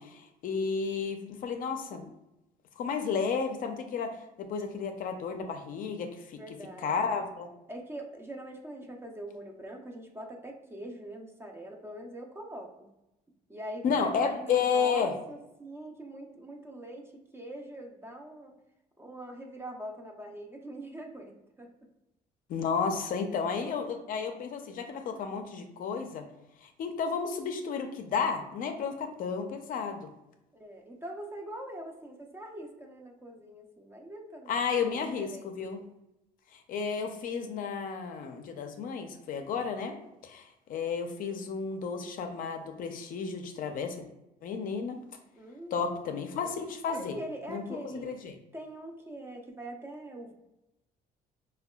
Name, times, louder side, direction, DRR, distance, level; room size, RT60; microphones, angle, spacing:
voice 1, 0.0-2.1 2.8-6.4 6.8-7.5 13.8-15.1 22.5-26.3 26.6-30.1 34.5-35.8 36.5-40.0 40.2-44.0 44.4-45.0 45.7-47.1 47.5-48.3, left 5 dB, 55° left, 6 dB, 0.4 m, -32 dB
voice 2, 6.3-6.9 7.7-12.9 13.5-18.5 19.0-21.7 30.5-35.6 45.3-45.9 46.9-48.1 48.5-50.3, right 1 dB, 15° right, 2 dB, 0.4 m, -43 dB
3.5 x 2.2 x 2.2 m, 0.92 s
cardioid pair, 110°, 17 cm